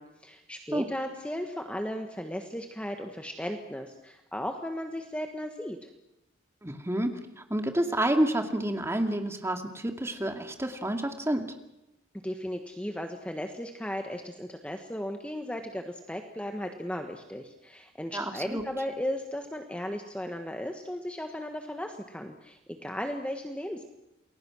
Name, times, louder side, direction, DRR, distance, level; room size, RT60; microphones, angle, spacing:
voice 1, 0.0-5.9 12.2-23.8, equal, 5° left, 4 dB, 1.5 m, -36 dB
voice 2, 6.6-11.5 18.1-18.6, right 1 dB, 15° right, 5 dB, 2.3 m, -29 dB
29.0 x 21.5 x 6.4 m, 0.91 s
head